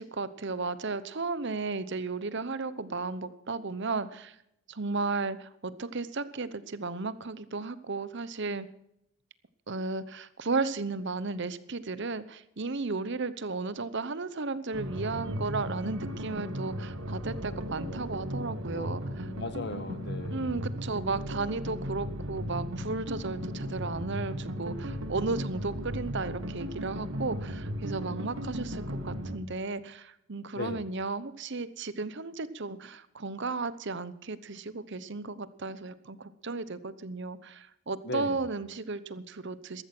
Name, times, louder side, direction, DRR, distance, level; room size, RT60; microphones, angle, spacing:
voice 1, 0.0-4.4 4.7-8.7 9.7-19.0 20.3-39.8, right 3 dB, 55° right, 15 dB, 0.9 m, -34 dB
sound 1, 14.7-29.4, equal, 75° right, 2.1 m, -36 dB
voice 2, 19.3-20.7 30.5-30.8 38.0-38.4, left 2 dB, 50° left, 11 dB, 1.5 m, -37 dB
14.0 x 13.5 x 6.0 m, 0.77 s
head